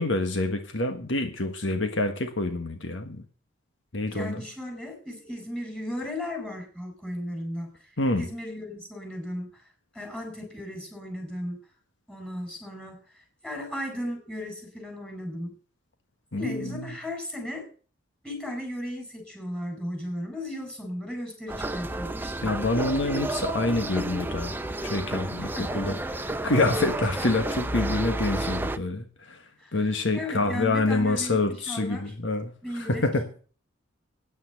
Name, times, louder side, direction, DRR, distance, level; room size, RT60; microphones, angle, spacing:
voice 1, 0.0-3.2 3.9-4.4 8.0-8.3 16.3-17.0 22.4-24.5 24.8-26.0 26.4-29.4 29.7-33.3, left 2 dB, 65° left, 6 dB, 1.4 m, -27 dB
voice 2, 4.1-7.9 8.1-11.6 12.1-15.5 16.4-17.7 18.2-22.5 25.5-26.0 29.6-32.1 32.6-33.1, left 1 dB, 5° left, 2 dB, 4.7 m, -36 dB
sound 1, 21.5-28.8, right 2 dB, 10° right, 0.6 m, -31 dB
9.5 x 8.8 x 8.0 m, 0.41 s
head